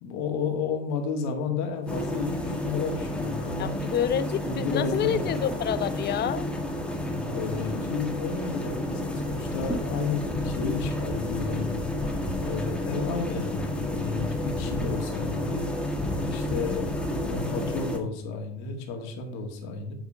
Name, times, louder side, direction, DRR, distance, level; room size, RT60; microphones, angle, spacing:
voice 1, 0.0-3.8 4.4-5.3 7.0-11.8 12.4-15.7 16.2-19.9, left 5 dB, 60° left, 4 dB, 2.0 m, -32 dB
sound 1, 1.9-18.0, left 1 dB, 5° left, 1.6 m, -31 dB
voice 2, 3.6-6.5, left 10 dB, 35° left, 14 dB, 0.7 m, -28 dB
8.7 x 4.7 x 5.6 m, 0.62 s
hypercardioid pair, 80°, 30 cm